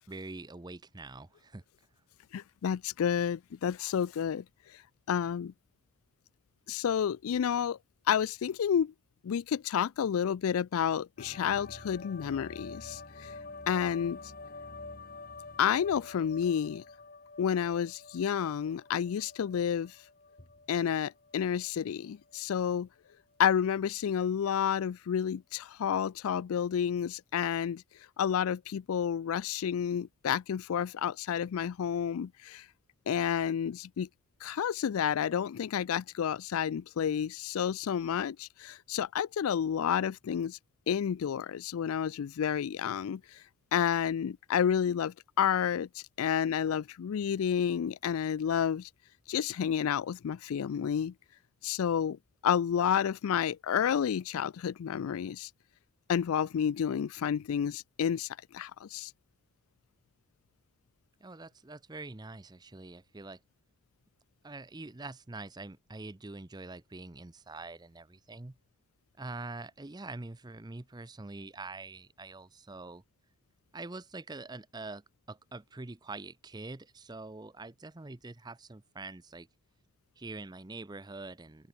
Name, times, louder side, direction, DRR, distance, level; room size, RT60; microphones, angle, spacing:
voice 1, 0.1-1.6 61.2-63.4 64.4-68.6 69.2-73.0 73.7-79.5 80.2-81.7, right 3 dB, 20° right, 0.6 m, -44 dB
voice 2, 2.3-4.4 5.1-5.5 6.7-7.8 8.1-8.9 9.2-13.3 13.7-14.2 15.6-16.8 17.4-19.9 20.7-22.9 23.4-27.8 28.2-32.6 33.1-34.1 34.4-40.6 40.9-43.2 43.7-45.9 46.2-48.9 49.3-51.1 51.6-52.2 52.4-55.5 56.1-58.3 58.5-59.1, left 8 dB, 70° left, 0.3 m, -30 dB
sound 1, 11.2-21.7 22.0-22.7, left 3 dB, 40° left, 3.1 m, -48 dB
open air
head